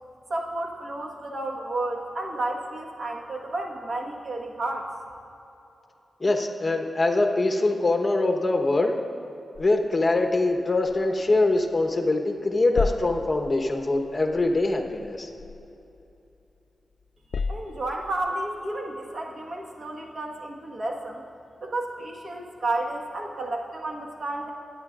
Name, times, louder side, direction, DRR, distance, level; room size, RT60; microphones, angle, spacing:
voice 1, 0.3-4.9 17.5-21.2 21.6-24.5, right 2 dB, 55° right, 0 dB, 1.5 m, -31 dB
voice 2, 6.2-9.0 9.6-15.3, left 2 dB, 30° left, 3 dB, 1.1 m, -23 dB
sound 1, 9.5-12.1 12.4-16.6 17.0-18.3, left 4 dB, 70° left, 0.3 m, -36 dB
22.5 x 9.9 x 2.5 m, 2.9 s
wide cardioid pair, 85°, 0 cm